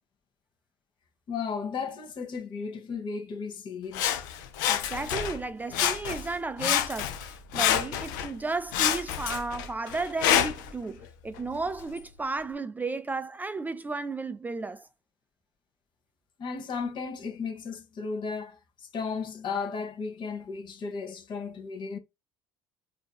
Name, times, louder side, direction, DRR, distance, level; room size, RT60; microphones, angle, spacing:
voice 1, 1.3-4.1 16.4-22.0, left 5 dB, 50° left, 1.1 m, -35 dB
Sawing, 3.9-5.4 5.7-6.3 6.6-8.3 8.7-10.7 11.4-11.5, left 10 dB, 85° left, 0.5 m, -27 dB
voice 2, 4.7-14.9, right 3 dB, 15° right, 0.3 m, -34 dB
5.1 x 2.7 x 2.3 m
supercardioid pair, 75°, 10 cm